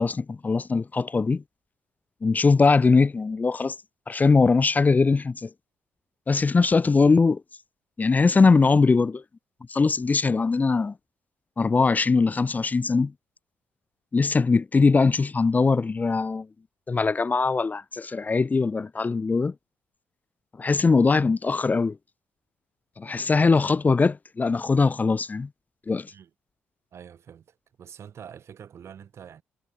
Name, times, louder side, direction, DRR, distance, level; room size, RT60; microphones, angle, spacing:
voice 1, 0.0-1.4 2.2-3.7 4.1-5.5 6.3-7.4 8.0-9.2 9.7-10.9 11.6-13.1 14.1-16.5 16.9-19.5 20.6-22.0 23.0-25.5 25.9-26.1, left 4 dB, 30° left, 0.8 m, -21 dB
voice 2, 26.9-29.4, right 8 dB, 60° right, 4.1 m, -46 dB
hypercardioid pair, 50°, 5 cm